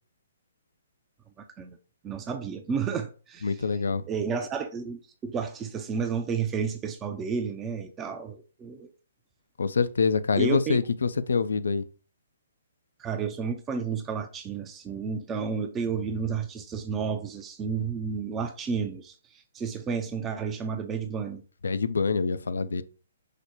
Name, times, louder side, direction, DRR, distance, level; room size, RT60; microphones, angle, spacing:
voice 1, 2.0-3.6 4.1-8.9 10.4-10.8 13.0-21.4, right 6 dB, 20° right, 0.5 m, -31 dB
voice 2, 3.4-4.0 9.6-11.8 21.6-22.8, left 5 dB, 70° left, 0.4 m, -25 dB
4.9 x 2.1 x 4.5 m
figure-of-eight pair, 130°, 0 cm